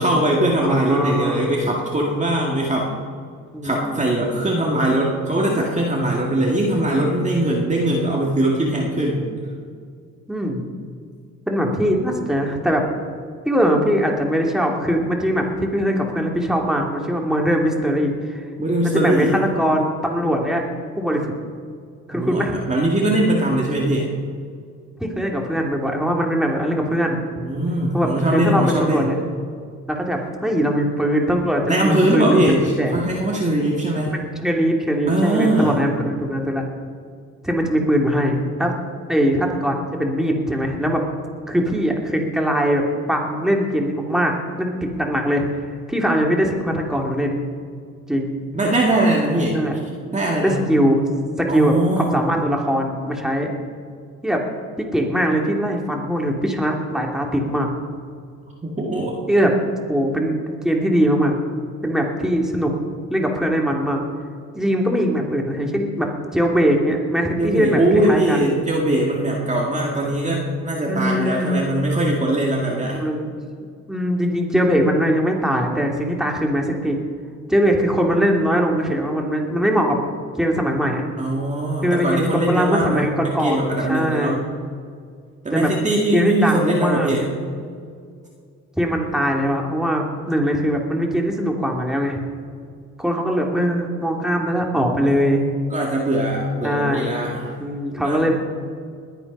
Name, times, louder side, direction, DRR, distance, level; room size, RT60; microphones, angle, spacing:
voice 1, 0.0-2.9 3.6-9.3 18.6-19.4 22.1-24.1 27.4-29.2 31.7-34.1 35.1-35.8 48.5-49.6 50.1-50.6 51.5-52.1 58.6-59.2 67.4-73.0 81.2-84.4 85.4-87.2 95.0-95.4 95.7-97.6 98.0-98.3, right 1 dB, 25° right, -2 dB, 2.1 m, -21 dB
voice 2, 0.6-1.5 3.5-4.0 10.3-10.6 11.5-12.8 13.4-18.4 18.8-20.6 21.0-21.3 22.1-22.6 25.0-27.2 27.9-29.1 29.9-32.4 32.8-32.9 34.1-36.6 37.4-38.7 39.1-41.0 41.5-42.8 43.1-45.4 45.9-47.4 48.1-48.4 49.5-49.8 50.4-51.0 51.4-53.5 54.2-54.4 54.8-57.7 59.3-59.5 59.9-61.3 61.8-62.7 63.1-64.0 64.5-68.5 70.9-71.6 73.0-73.3 73.9-77.0 77.5-80.0 80.4-81.0 81.8-83.6 83.9-84.4 85.5-85.7 86.1-87.1 88.8-92.2 93.0-95.4 96.6-97.1 97.6-98.3, equal, ahead, 0 dB, 2.6 m, -21 dB
20.5 x 9.0 x 5.5 m, 2.2 s
cardioid pair, 90°, 30 cm